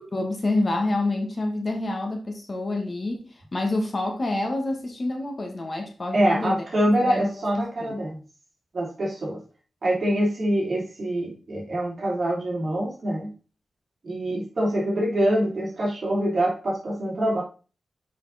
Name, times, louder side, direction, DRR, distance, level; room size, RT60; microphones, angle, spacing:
voice 1, 0.1-7.3 7.8-8.0, left 2 dB, 35° left, 4 dB, 1.4 m, -28 dB
voice 2, 6.1-8.2 8.7-9.4 9.8-13.3 14.0-17.4, right 1 dB, 45° right, -3 dB, 3.1 m, -25 dB
7.0 x 5.5 x 4.1 m, 0.35 s
wide cardioid pair, 130°, 0 cm